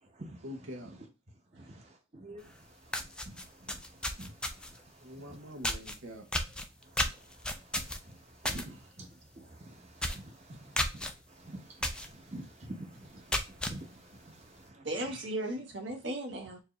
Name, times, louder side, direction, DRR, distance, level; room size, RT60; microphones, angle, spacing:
voice 1, 0.4-0.9 5.0-6.3 8.4-8.8 14.3-14.4, equal, 85° right, 1.0 m, -44 dB
voice 2, 2.1-2.4 3.3-3.4 4.2-4.3 8.5-8.6 9.0-9.1 9.6-9.7 10.1-10.2 11.4-13.2 13.5-13.9, right 1 dB, 35° right, 1.0 m, -45 dB
sound 1, 2.5-2.6 2.9-4.8 5.6-6.0 6.3-8.7 9.0-9.3 9.5-9.6 10.0-10.3 10.8-11.1 11.8-12.1 12.5-12.6 13.1-13.8, left 1 dB, 5° left, 0.4 m, -33 dB
voice 3, 10.5-10.9 14.8-16.6, right 1 dB, 70° right, 1.2 m, -37 dB
4.5 x 2.6 x 3.0 m
head